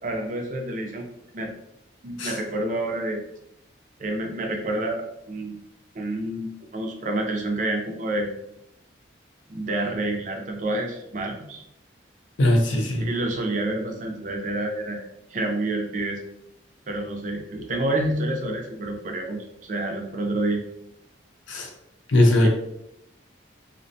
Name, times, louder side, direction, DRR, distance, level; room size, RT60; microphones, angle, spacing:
voice 1, 0.0-1.1 1.3-1.5 2.0-3.2 4.0-5.6 5.9-8.3 9.5-11.6 13.0-15.0 15.3-16.2 16.9-19.4 19.7-20.6 22.4-22.5, right 1 dB, 40° right, 1 dB, 0.4 m, -28 dB
voice 2, 12.4-13.1 21.5-21.7 22.1-22.5, left 1 dB, 75° left, 3 dB, 0.5 m, -19 dB
2.5 x 2.1 x 2.6 m, 0.81 s
head